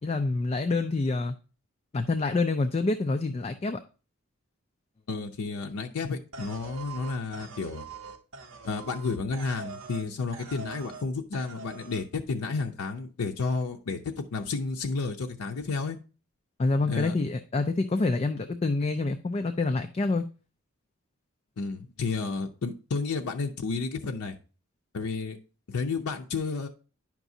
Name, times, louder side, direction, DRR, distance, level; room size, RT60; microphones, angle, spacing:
voice 1, 0.0-1.3 1.9-3.8 16.6-20.2, left 3 dB, 30° left, 8 dB, 0.3 m, -27 dB
voice 2, 5.1-7.8 8.6-16.0 16.9-17.1 21.6-24.4 24.9-25.4 25.7-26.7, left 4 dB, 90° left, 3 dB, 0.6 m, -31 dB
sound 1, 6.3-10.1 10.3-11.1 11.3-12.0, right 4 dB, 60° right, 0.7 m, -43 dB
9.9 x 5.9 x 2.7 m, 0.35 s
head